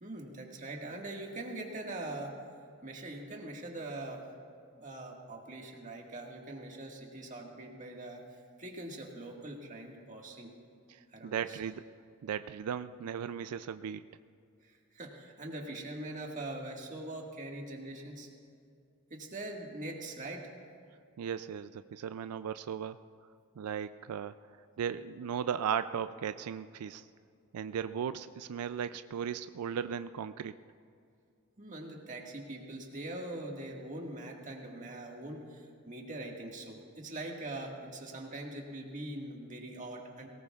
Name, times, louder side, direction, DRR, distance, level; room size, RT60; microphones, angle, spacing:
voice 1, 0.0-2.4 2.8-4.2 4.8-10.5 11.1-11.6 14.6-18.3 19.1-20.5 31.6-40.3, right 1 dB, 35° right, 0 dB, 1.7 m, -42 dB
voice 2, 10.9-11.8 12.2-14.0 21.2-23.0 23.6-24.5 24.8-27.1 27.5-30.5, right 8 dB, 90° right, 12 dB, 0.4 m, -36 dB
22.5 x 18.5 x 2.4 m, 2.4 s
head